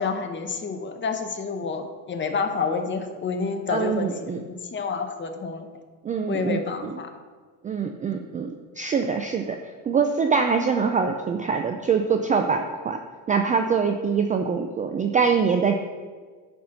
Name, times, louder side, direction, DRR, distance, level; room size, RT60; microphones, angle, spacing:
voice 1, 0.0-4.1 4.3-5.7 6.3-7.1, left 5 dB, 25° left, 6 dB, 0.9 m, -29 dB
voice 2, 3.7-4.4 6.0-7.0 7.6-9.6 9.9-13.0 13.3-15.7, right 5 dB, 20° right, 5 dB, 0.3 m, -24 dB
9.9 x 4.3 x 6.4 m, 1.5 s
cardioid pair, 130°, 43 cm